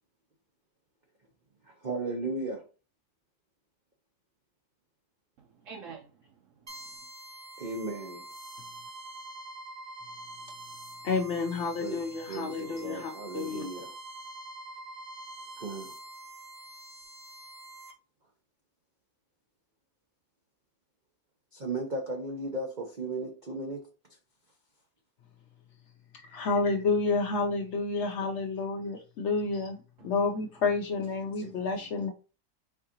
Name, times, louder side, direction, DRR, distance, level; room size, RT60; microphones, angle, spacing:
voice 1, 1.6-2.6 7.6-8.2 11.8-12.0 12.3-13.9 15.6-15.9 21.5-23.9 27.9-28.1 31.4-31.8, right 2 dB, 90° right, 2 dB, 0.4 m, -36 dB
voice 2, 5.4-7.0 30.0-30.1, right 5 dB, 65° right, 0 dB, 0.8 m, -48 dB
sound 1, 6.7-17.9, right 1 dB, 40° right, 0.5 m, -45 dB
voice 3, 11.0-13.6 26.2-29.8 30.0-32.1, left 4 dB, 70° left, 2 dB, 0.6 m, -30 dB
4.6 x 3.7 x 2.8 m, 0.34 s
omnidirectional pair, 1.9 m